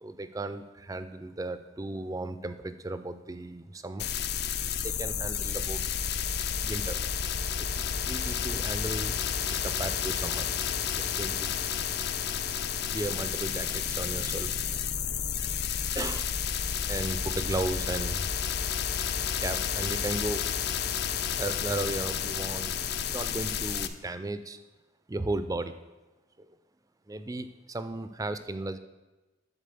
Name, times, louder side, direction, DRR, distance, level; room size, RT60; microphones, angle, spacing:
voice 1, 0.0-4.1 4.6-5.8 6.6-7.2 7.6-9.2 9.5-11.6 12.9-14.5 15.9-16.3 16.9-18.3 19.4-20.4 21.3-22.7 23.0-24.6 25.1-25.8 27.1-28.8, right 2 dB, 15° right, 11 dB, 0.4 m, -35 dB
sound 1, 4.0-23.9, left 7 dB, 50° left, 0.5 m, -31 dB
sound 2, 5.6-23.7, right 1 dB, 60° right, 0.7 m, -51 dB
11.0 x 4.2 x 6.8 m, 1.1 s
head